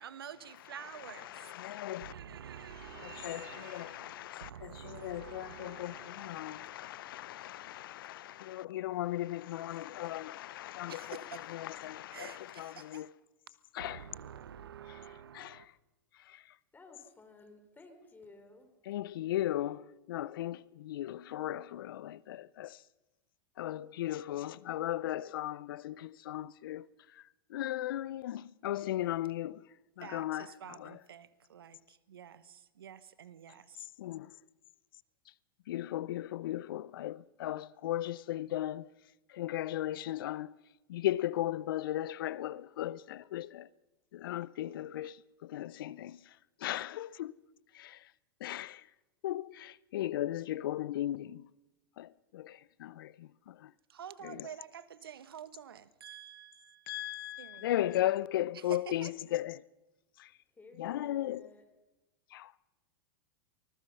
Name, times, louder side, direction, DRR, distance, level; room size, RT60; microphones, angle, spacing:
voice 1, 0.0-1.6 2.0-7.2 10.9-11.4 12.1-13.0 13.8-15.7 30.0-33.9 53.9-56.9 57.4-57.7 58.7-59.1, right 9 dB, 85° right, 1.2 m, -49 dB
voice 2, 0.8-2.1 2.6-13.1 13.7-14.1 14.9-15.0 15.3-15.8 16.1-16.6 18.8-22.8 23.6-31.0 33.8-34.4 35.3-35.4 35.7-38.9 39.3-40.5 40.9-43.7 44.1-47.4 47.7-48.1 48.4-48.9 49.2-51.5 52.0-53.7 54.2-54.5 56.9-59.6 60.2-60.4 60.8-61.5 62.3-62.7, left 13 dB, 70° left, 0.6 m, -37 dB
voice 3, 16.7-18.7 60.5-61.6, left 2 dB, 15° left, 4.2 m, -55 dB
24.0 x 20.5 x 5.6 m
hypercardioid pair, 100°, 12 cm